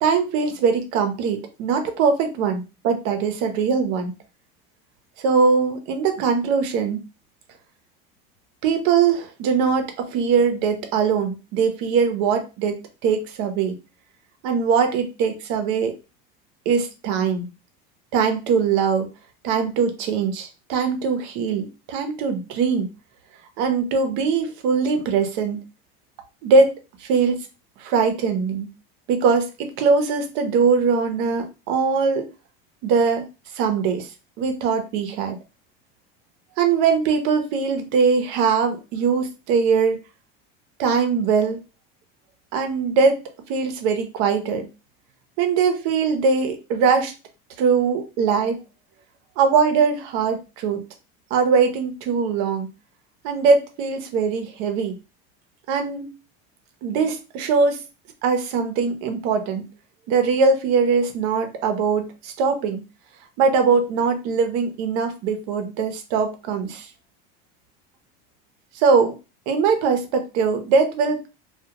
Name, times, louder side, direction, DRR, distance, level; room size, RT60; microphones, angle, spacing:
voice 1, 0.0-4.1 5.2-7.0 8.6-13.8 14.4-15.9 16.7-17.5 18.1-19.1 19.4-22.9 23.6-25.6 26.4-27.5 27.8-28.7 29.1-32.3 32.8-33.2 33.5-34.1 34.4-35.4 36.6-40.0 40.8-41.6 42.5-44.7 45.4-47.1 47.6-48.6 49.4-50.8 51.3-52.7 53.2-55.0 55.7-56.1 56.8-57.8 58.2-59.7 60.1-62.8 63.4-66.9 68.7-69.2 69.5-71.3, right 5 dB, 70° right, 6 dB, 0.8 m, -21 dB
2.3 x 2.3 x 2.8 m, 0.29 s
supercardioid pair, 105°, 29 cm